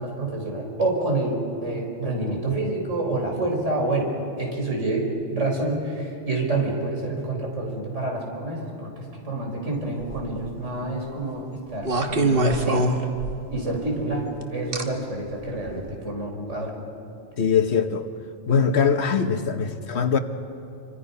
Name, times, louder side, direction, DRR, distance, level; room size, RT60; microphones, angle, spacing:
voice 1, 0.0-4.1 4.4-11.4 11.7-12.9 13.5-16.7, right 2 dB, 90° right, 0 dB, 4.8 m, -28 dB
sound 1, 10.0-10.5 11.8-13.6 14.7-14.8 15.7-15.9, right 2 dB, 50° right, 1.6 m, -23 dB
voice 2, 17.4-18.1 18.5-20.2, left 6 dB, 65° left, 9 dB, 1.3 m, -22 dB
28.0 x 25.0 x 5.5 m, 2.7 s
omnidirectional pair, 1.2 m